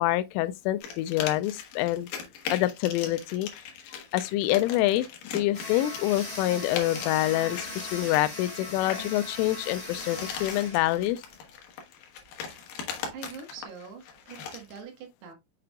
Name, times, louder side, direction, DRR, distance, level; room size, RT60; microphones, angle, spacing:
voice 1, 0.0-2.1 2.5-3.5 3.9-5.1 5.3-11.2, left 15 dB, 85° left, 3.1 m, -26 dB
sound 1, 0.8-9.1 9.7-14.8, left 7 dB, 70° left, 2.3 m, -40 dB
sound 2, 5.5-11.5, left 2 dB, 30° left, 2.7 m, -39 dB
voice 2, 13.1-15.3, right 6 dB, 70° right, 3.1 m, -44 dB
6.7 x 6.6 x 2.3 m
omnidirectional pair, 5.7 m